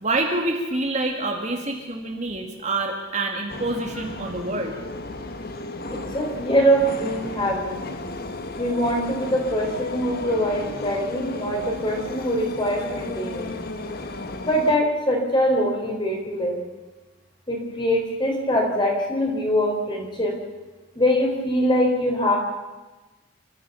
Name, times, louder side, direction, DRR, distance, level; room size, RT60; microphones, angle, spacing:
voice 1, 0.0-4.8, right 2 dB, 35° right, 2 dB, 2.1 m, -27 dB
sound 1, 3.5-14.8, left 2 dB, 45° left, 1.5 m, -34 dB
voice 2, 5.9-7.8 8.6-13.5 14.4-16.6 17.5-20.3 21.0-22.4, equal, 20° left, 1 dB, 4.3 m, -23 dB
28.0 x 14.0 x 7.0 m, 1.2 s
head